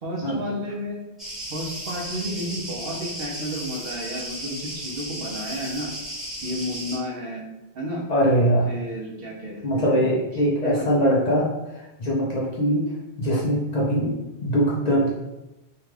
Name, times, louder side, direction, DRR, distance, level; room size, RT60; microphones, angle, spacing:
voice 1, 0.0-1.0 1.5-5.9 6.4-7.4 7.7-8.1 8.6-10.1 10.6-10.9, equal, 65° right, -2 dB, 0.8 m, -32 dB
sound 1, 1.2-7.0, right 1 dB, ahead, 1.0 m, -35 dB
voice 2, 8.1-8.7 9.6-12.9 13.2-14.1 14.4-15.1, equal, 50° left, -5 dB, 0.6 m, -22 dB
2.9 x 2.3 x 3.1 m, 0.96 s
omnidirectional pair, 1.1 m